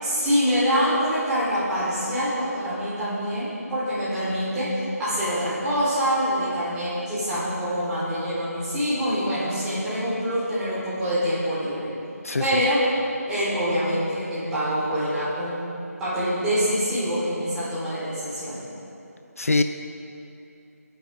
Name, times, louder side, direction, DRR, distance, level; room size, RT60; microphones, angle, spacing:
voice 1, 0.0-11.9 12.4-12.9 13.3-15.7 16.0-18.6, equal, 5° right, -13 dB, 4.2 m, -25 dB
voice 2, 12.2-12.6 19.4-19.6, left 3 dB, 60° left, 8 dB, 0.7 m, -23 dB
25.5 x 9.8 x 3.9 m, 2.8 s
figure-of-eight pair, 160°, 9 cm